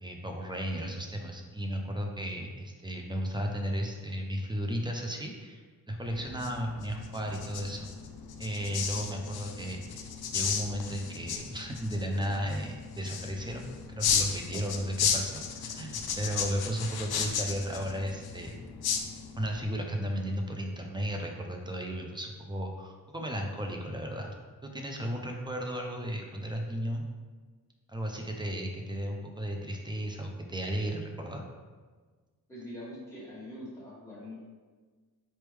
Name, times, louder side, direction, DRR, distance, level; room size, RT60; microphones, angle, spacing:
voice 1, 0.0-7.9 8.4-18.6 19.4-24.3 24.6-27.0 27.9-31.4, equal, 15° right, 1 dB, 0.3 m, -34 dB
sound 1, 6.0-19.6, left 6 dB, 80° left, 0.5 m, -34 dB
voice 2, 32.5-34.4, left 1 dB, 10° left, -9 dB, 1.4 m, -44 dB
4.2 x 3.4 x 3.1 m, 1.4 s
wide cardioid pair, 160°, 37 cm